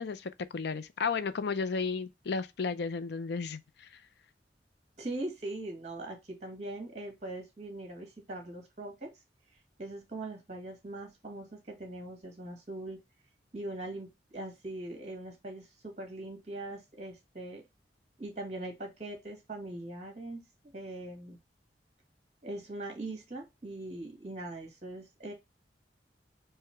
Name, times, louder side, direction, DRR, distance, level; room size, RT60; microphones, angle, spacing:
voice 1, 0.0-4.0, left 5 dB, 65° left, 0.5 m, -33 dB
voice 2, 5.0-9.1 9.8-13.0 13.5-17.6 18.2-20.5 20.7-21.4 22.4-25.3, right 2 dB, 40° right, 2.0 m, -41 dB
4.8 x 2.2 x 4.4 m
head